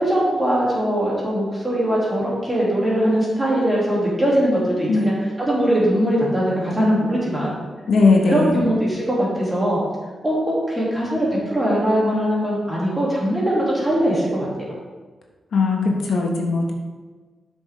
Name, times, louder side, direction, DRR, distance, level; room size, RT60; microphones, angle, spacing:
voice 1, 0.0-7.6 8.3-9.8 10.2-14.5, equal, 10° right, -6 dB, 2.9 m, -21 dB
voice 2, 7.9-8.6 15.5-16.7, left 3 dB, 70° left, 0 dB, 1.4 m, -18 dB
12.0 x 6.2 x 3.7 m, 1.4 s
wide cardioid pair, 175°, 0 cm